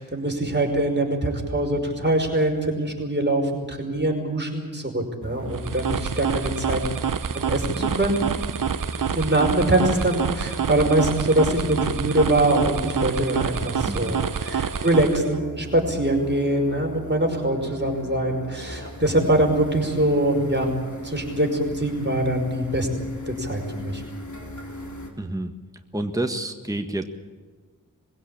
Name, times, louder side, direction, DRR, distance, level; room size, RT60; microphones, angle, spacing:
voice 1, 0.0-6.8 7.3-8.2 9.1-20.7 21.0-22.9 23.4-24.0, right 1 dB, 30° right, 2 dB, 5.3 m, -23 dB
sound 1, 5.2-25.1, equal, 55° left, 3.8 m, -37 dB
sound 2, 5.5-15.4, right 8 dB, 60° right, 0.7 m, -28 dB
voice 2, 13.9-14.2 25.2-25.5 25.9-27.1, right 1 dB, 10° right, 5 dB, 1.6 m, -28 dB
22.0 x 16.0 x 8.9 m, 1.4 s
cardioid pair, 45°, 36 cm